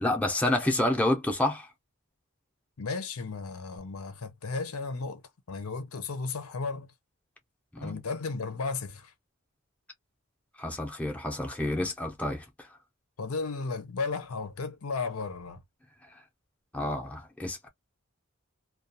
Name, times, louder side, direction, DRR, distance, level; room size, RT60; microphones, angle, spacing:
voice 1, 0.0-1.7 7.7-8.0 10.6-12.7 16.7-17.7, left 1 dB, 5° left, 0.5 m, -29 dB
voice 2, 2.8-5.2 5.5-6.9 7.8-9.1 13.2-15.6, left 4 dB, 85° left, 0.6 m, -34 dB
2.3 x 2.2 x 2.6 m
head